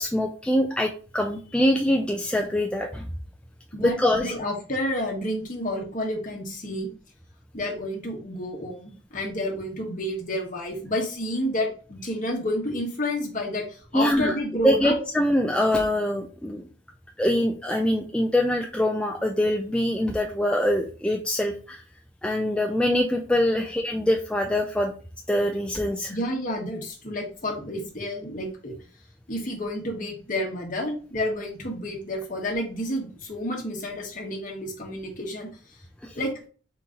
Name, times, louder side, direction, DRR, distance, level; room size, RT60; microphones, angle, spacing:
voice 1, 0.0-3.0 3.8-4.3 13.9-14.3 14.6-16.6 17.2-21.8 22.2-24.9 25.3-26.1 36.0-36.1, left 1 dB, 5° left, 1 dB, 0.3 m, -24 dB
voice 2, 3.7-6.9 7.5-15.0 26.1-28.7 29.3-35.5 36.2-36.3, left 1 dB, 40° left, 1 dB, 1.1 m, -30 dB
3.9 x 2.9 x 3.7 m, 0.39 s
head